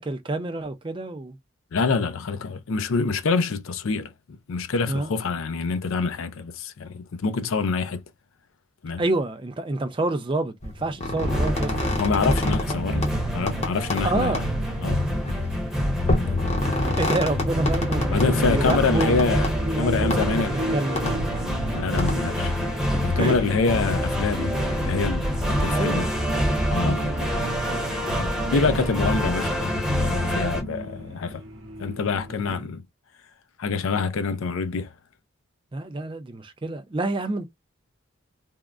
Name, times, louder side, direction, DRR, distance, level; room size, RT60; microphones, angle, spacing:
voice 1, 0.0-1.4 4.9-5.1 9.0-11.7 14.0-14.4 15.8-15.9 17.0-19.1 19.6-21.4 23.0-23.3 25.7-26.2 32.6-32.7 35.7-37.4, right 2 dB, 25° right, 0.5 m, -28 dB
voice 2, 1.7-8.0 8.8-9.0 12.0-14.5 14.8-15.0 16.1-16.4 18.1-19.5 19.8-20.6 21.7-22.5 23.0-26.1 26.7-27.4 28.1-31.4 31.8-32.8 33.6-34.9, left 4 dB, 80° left, 0.5 m, -26 dB
sound 1, 10.6-12.8 13.0-13.1 13.5-14.0 14.3-14.4 15.2-15.3 16.1-18.3 18.7-19.5 20.1-20.2 21.0-21.1 22.0-22.1, left 1 dB, 35° left, 0.9 m, -28 dB
sound 2, 11.2-30.6, equal, ahead, 0.8 m, -26 dB
sound 3, 17.7-32.6, equal, 70° right, 0.8 m, -38 dB
3.6 x 2.1 x 2.3 m
head